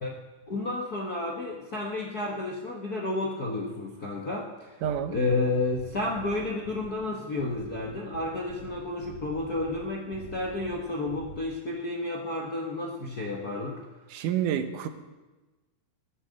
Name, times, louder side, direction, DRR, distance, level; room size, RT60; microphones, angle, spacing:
voice 1, 0.5-4.8 5.1-13.8, left 2 dB, 50° left, -1 dB, 1.1 m, -31 dB
sound 1, 4.8-11.4, right 3 dB, 60° right, 2.5 m, -46 dB
voice 2, 4.8-5.2 14.1-14.9, right 9 dB, 75° right, 9 dB, 2.5 m, -28 dB
16.0 x 10.0 x 7.8 m, 1.2 s
omnidirectional pair, 3.8 m